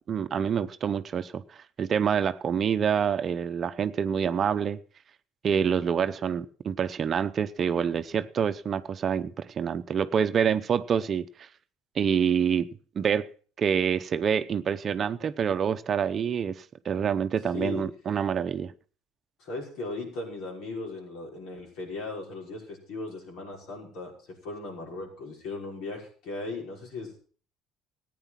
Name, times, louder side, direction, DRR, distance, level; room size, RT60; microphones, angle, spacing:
voice 1, 0.1-1.4 1.8-4.8 5.4-11.5 12.0-12.7 13.0-13.2 13.6-18.7, right 7 dB, 40° right, 0.8 m, -27 dB
voice 2, 17.5-17.9 19.4-24.1 24.4-27.1, left 3 dB, 70° left, 5.7 m, -37 dB
15.0 x 9.3 x 5.9 m
supercardioid pair, 90°, 0 cm